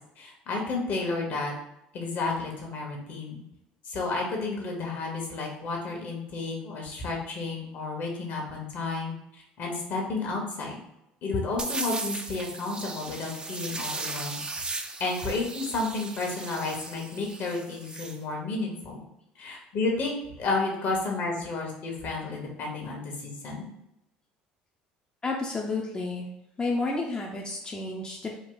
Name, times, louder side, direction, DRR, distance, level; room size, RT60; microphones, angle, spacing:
voice 1, 0.2-1.5 1.9-3.4 3.9-9.1 9.6-10.8 11.2-14.4 15.0-19.0 19.4-23.7, left 3 dB, 55° left, 0 dB, 1.3 m, -31 dB
sound 1, 11.6-18.2, right 3 dB, 25° right, 0.6 m, -37 dB
voice 2, 25.2-26.3 26.6-28.4, left 3 dB, 25° left, -1 dB, 0.7 m, -31 dB
3.8 x 2.4 x 3.9 m, 0.85 s
hypercardioid pair, 65°, 4 cm